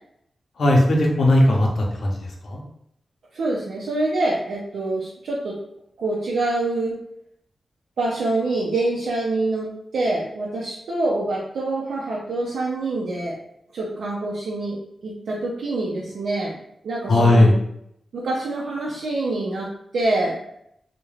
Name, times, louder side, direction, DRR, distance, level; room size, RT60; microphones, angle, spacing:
voice 1, 0.6-2.6 17.1-17.5, left 1 dB, 70° left, 0 dB, 0.6 m, -17 dB
voice 2, 3.3-5.6 6.0-7.0 8.0-13.4 13.7-16.6 16.8-17.5 18.1-19.7 19.9-20.4, right 2 dB, 85° right, -5 dB, 0.4 m, -25 dB
2.3 x 2.1 x 3.1 m, 0.75 s
wide cardioid pair, 120°, 0 cm